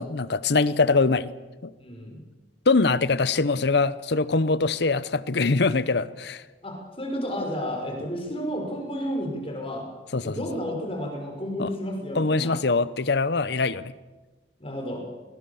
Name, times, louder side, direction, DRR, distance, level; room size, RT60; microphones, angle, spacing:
voice 1, 0.0-1.3 1.6-1.7 2.7-6.4 10.1-10.4 11.6-11.7 12.1-13.9, left 3 dB, 65° left, 16 dB, 0.8 m, -23 dB
voice 2, 1.8-2.2 6.6-9.9 10.2-12.6 14.6-15.0, equal, 30° left, 1 dB, 5.5 m, -32 dB
21.5 x 19.5 x 7.1 m, 1.2 s
head